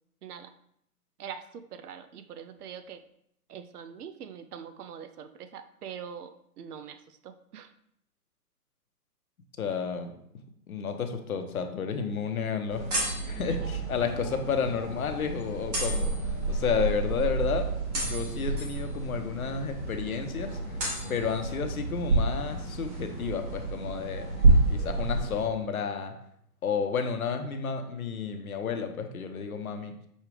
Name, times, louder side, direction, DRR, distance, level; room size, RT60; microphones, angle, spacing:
voice 1, 0.2-0.5 1.2-3.0 3.5-6.3 6.6-7.7 13.7-13.8 14.1-14.3, right 8 dB, 70° right, 9 dB, 0.5 m, -43 dB
voice 2, 9.6-10.2 10.7-16.1 16.5-20.8 21.1-24.3 24.7-26.1 26.6-29.9, left 6 dB, 65° left, 6 dB, 0.7 m, -31 dB
sound 1, 12.7-25.4, right 2 dB, 25° right, 0.8 m, -29 dB
6.2 x 2.4 x 3.2 m, 0.71 s
hypercardioid pair, 145°, 47 cm